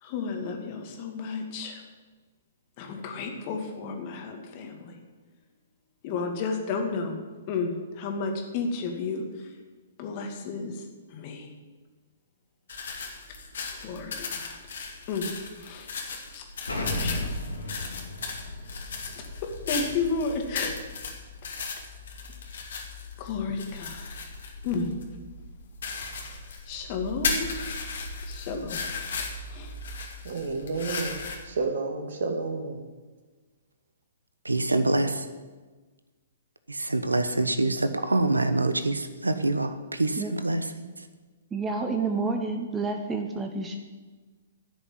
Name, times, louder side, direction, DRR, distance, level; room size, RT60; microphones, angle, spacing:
voice 1, 0.0-1.8 2.8-5.0 6.0-7.2 7.5-9.5 10.0-11.5 13.8-14.6 15.1-15.3 15.6-15.9 16.3-16.4 16.9-17.3 19.1-20.7 23.2-24.1 24.6-24.9 26.1-27.8 28.3-28.8 29.5-29.7, left 4 dB, 40° left, 3 dB, 2.4 m, -32 dB
sound 1, 12.7-31.4, left 4 dB, 60° left, 2.6 m, -36 dB
Explosion, 16.7-21.4, left 1 dB, 85° left, 3.1 m, -35 dB
voice 2, 30.2-32.8, right 3 dB, 60° right, 4 dB, 2.3 m, -31 dB
voice 3, 34.5-35.2 36.7-40.9, right 2 dB, 85° right, 10 dB, 1.0 m, -25 dB
voice 4, 41.5-43.8, right 4 dB, 15° right, 4 dB, 1.1 m, -29 dB
12.0 x 6.5 x 9.6 m, 1.3 s
figure-of-eight pair, 120°, 0 cm